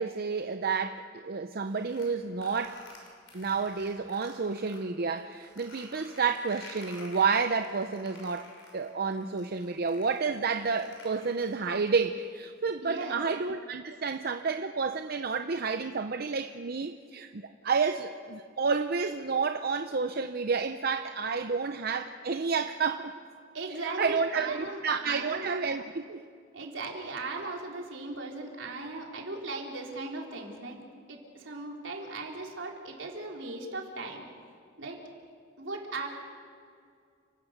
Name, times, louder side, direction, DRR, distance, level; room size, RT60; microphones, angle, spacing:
voice 1, 0.0-2.8 3.3-23.1 24.0-26.2, right 5 dB, 55° right, 8 dB, 0.7 m, -30 dB
sound 1, 1.6-4.8 5.2-11.8, left 2 dB, 70° left, 6.3 m, -51 dB
voice 2, 12.8-13.2 23.5-25.5 26.5-30.8 31.1-34.2 34.8-35.0 35.6-36.1, right 3 dB, 80° right, 0 dB, 3.7 m, -38 dB
30.0 x 17.0 x 6.6 m, 2.2 s
head